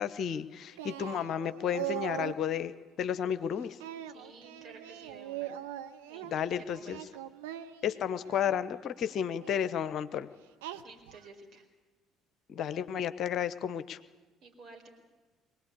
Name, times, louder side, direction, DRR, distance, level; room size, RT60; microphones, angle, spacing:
voice 1, 0.0-2.7 3.0-3.8 6.3-7.0 7.8-10.3 12.5-14.0, left 8 dB, 50° left, 13 dB, 0.8 m, -32 dB
Singing, 0.8-2.4 3.8-6.3 6.8-8.6 9.4-9.7 10.6-11.3, right 12 dB, 75° right, 0.9 m, -41 dB
voice 2, 4.1-5.6 6.1-7.2 10.8-11.7 14.4-14.9, right 4 dB, 50° right, 1 dB, 4.7 m, -53 dB
23.0 x 18.5 x 8.5 m, 1.2 s
figure-of-eight pair, 55°, 0 cm